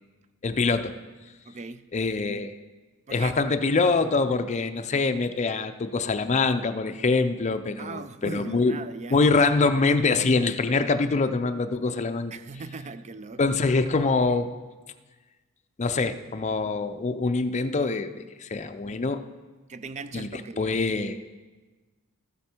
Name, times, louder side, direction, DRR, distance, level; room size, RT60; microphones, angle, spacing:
voice 1, 0.4-1.0 1.9-2.6 3.1-8.8 9.1-12.3 13.4-14.5 15.8-18.1 18.4-19.2 20.1-21.2, left 3 dB, 30° left, 9 dB, 0.5 m, -24 dB
voice 2, 1.4-1.9 3.1-3.4 7.8-9.2 12.3-13.4 19.7-20.8, right 4 dB, 30° right, 13 dB, 0.4 m, -38 dB
13.5 x 7.9 x 4.4 m, 1.3 s
head